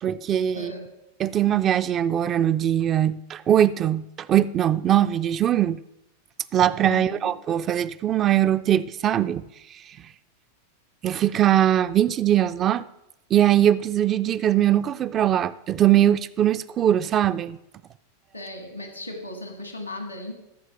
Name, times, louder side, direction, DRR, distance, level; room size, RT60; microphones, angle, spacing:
voice 1, 0.0-0.7 1.2-5.8 6.5-9.4 9.7-10.1 11.0-12.9 13.3-17.6, right 11 dB, 30° right, 0.3 m, -21 dB
voice 2, 0.5-0.9 6.9-7.3 18.3-20.3, left 1 dB, 90° left, 1.7 m, -36 dB
13.5 x 4.6 x 5.9 m
figure-of-eight pair, 90°, 0 cm